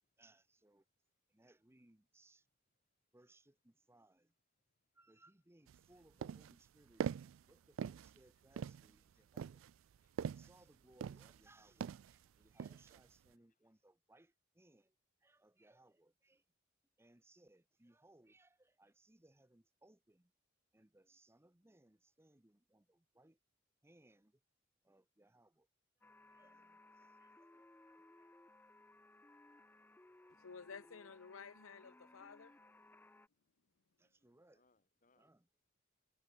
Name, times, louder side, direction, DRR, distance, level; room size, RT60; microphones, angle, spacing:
voice 1, 0.2-0.8 1.3-2.5 3.1-4.3 4.9-7.1 7.4-9.6 10.2-14.9 15.2-16.4 17.0-20.3 20.7-23.4 23.8-24.4 24.8-25.7 26.3-26.7 27.0-28.3 34.0-34.6 35.1-35.5, right 1 dB, 10° right, 1.0 m, -68 dB
voice 2, 4.6-4.9 5.8-6.0 6.8-7.2 7.5-7.9 8.2-10.7 11.3-11.4 12.2-12.6 13.2-13.8 30.0-30.4 32.1-32.4 34.5-35.3, left 3 dB, 40° left, 3.6 m, -82 dB
sound 1, 5.7-5.8 6.2-6.6 7.0-7.4 7.8-8.2 8.6-8.9 9.4-10.6 11.0-11.5 11.8-12.1 12.6-13.0, right 7 dB, 75° right, 0.3 m, -42 dB
sound 2, 26.0-33.3, left 2 dB, 10° left, 0.5 m, -63 dB
voice 3, 30.4-32.5, left 5 dB, 85° left, 0.7 m, -53 dB
head